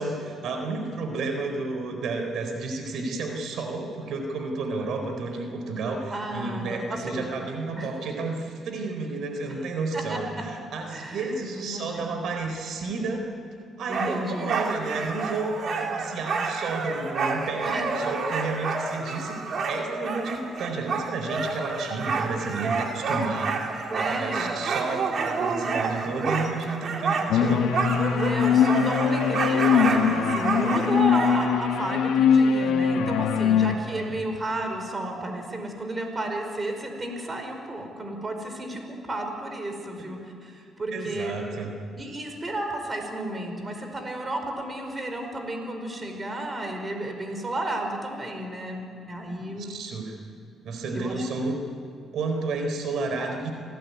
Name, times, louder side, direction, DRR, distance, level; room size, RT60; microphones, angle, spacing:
voice 1, 0.0-10.2 10.7-13.2 13.8-27.7 33.7-34.2 40.0-40.1 40.9-41.7 49.5-50.2 50.6-51.6 52.1-53.5, right 3 dB, 75° right, 4 dB, 4.3 m, -31 dB
voice 2, 6.1-7.3 7.7-7.9 9.6-9.7 9.9-10.2 10.9-12.1 13.9-14.5 17.6-17.9 23.4-23.5 23.9-24.5 25.6-26.0 28.0-41.4 42.0-49.7 50.9-51.2, right 1 dB, 30° right, 4 dB, 5.3 m, -32 dB
sound 1, 13.9-31.5, right 4 dB, 55° right, 3.6 m, -29 dB
sound 2, 27.3-33.7, left 7 dB, 90° left, 1.8 m, -22 dB
29.0 x 19.0 x 9.6 m, 2.4 s
cardioid pair, 90°, 0 cm